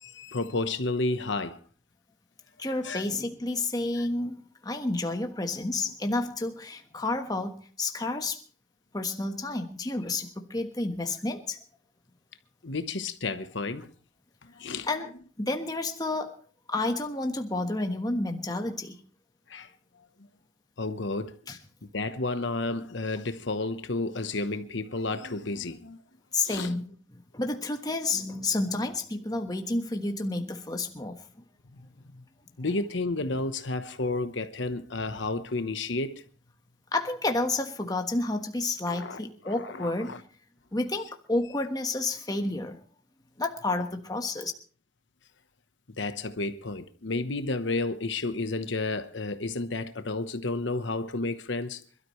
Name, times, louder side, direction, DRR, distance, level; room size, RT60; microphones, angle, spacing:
voice 1, 0.0-1.6 2.8-3.1 12.6-13.9 14.4-14.9 19.5-19.7 20.8-21.4 21.9-26.0 26.4-26.7 32.6-36.2 38.9-39.2 39.4-40.2 46.0-51.8, left 3 dB, 65° left, 1.0 m, -31 dB
voice 2, 2.6-8.4 8.9-11.6 14.9-15.1 15.4-16.4 16.7-19.0 21.5-21.6 26.3-31.2 36.9-40.1 40.7-42.8 43.4-44.5, left 2 dB, 20° left, 1.3 m, -30 dB
26.5 x 12.5 x 3.2 m
head